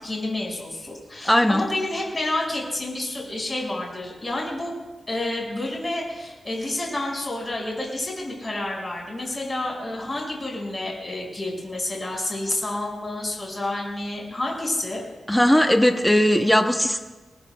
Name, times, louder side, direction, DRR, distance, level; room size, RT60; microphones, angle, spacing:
voice 1, 0.0-4.7 5.1-15.1, left 2 dB, 25° left, -2 dB, 5.8 m, -29 dB
voice 2, 1.2-1.6 15.3-17.0, equal, 5° left, 5 dB, 0.9 m, -18 dB
24.5 x 19.0 x 2.3 m, 1.2 s
wide cardioid pair, 115°, 0 cm